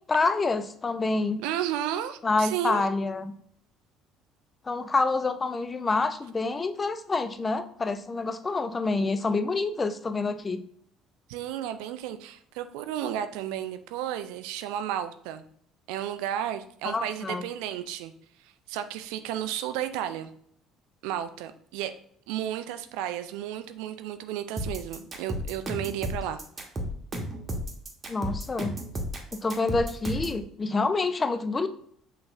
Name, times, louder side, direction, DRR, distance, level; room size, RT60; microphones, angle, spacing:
voice 1, 0.1-1.4 2.2-3.2 4.7-10.6 16.8-17.4 28.1-28.8 29.3-31.7, left 3 dB, 25° left, 9 dB, 0.4 m, -27 dB
voice 2, 1.4-2.8 11.3-15.4 15.9-18.1 18.4-20.3 21.0-21.9 22.3-26.4, right 11 dB, 65° right, 10 dB, 0.3 m, -33 dB
sound 1, 24.6-30.4, equal, 30° right, 1.0 m, -33 dB
5.7 x 2.9 x 2.5 m, 0.65 s
figure-of-eight pair, 55°, 0 cm